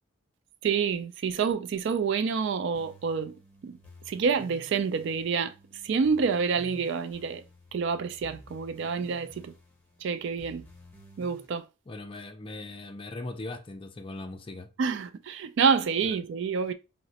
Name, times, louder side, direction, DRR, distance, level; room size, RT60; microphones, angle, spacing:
voice 1, 0.6-3.3 3.6-3.8 4.1-5.5 5.8-7.4 7.7-9.5 10.0-10.6 11.2-11.6 14.8-16.7, right 5 dB, 60° right, 0.3 m, -28 dB
sound 1, 2.7-11.5, equal, 10° left, 0.9 m, -53 dB
voice 2, 11.9-14.7 16.0-16.2, left 2 dB, 25° left, 0.4 m, -39 dB
4.8 x 2.1 x 2.7 m
head